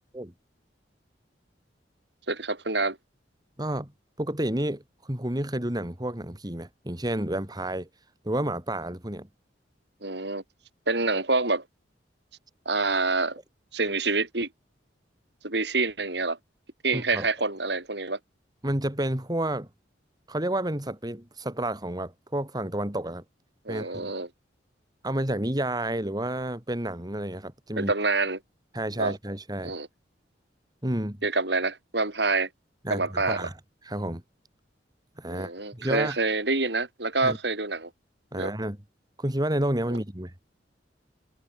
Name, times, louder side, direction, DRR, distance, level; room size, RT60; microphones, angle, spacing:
voice 1, 2.3-3.0 10.0-10.4 10.9-11.6 12.7-13.4 13.7-14.5 15.4-16.4 16.8-18.2 23.7-24.3 27.8-28.4 29.0-29.1 29.6-29.9 31.2-32.5 32.9-33.5 35.3-37.9 38.3-38.5 39.9-40.0, right 3 dB, 65° right, 5.4 m, -27 dB
voice 2, 3.6-3.9 4.2-7.9 8.2-9.3 16.9-17.3 18.6-19.7 20.3-23.2 23.7-24.1 25.0-27.9 28.7-29.7 30.8-31.2 32.8-33.5 33.8-34.2 35.2-36.2 37.2-37.4 38.3-38.8 39.2-40.3, right 1 dB, 20° right, 2.6 m, -30 dB
head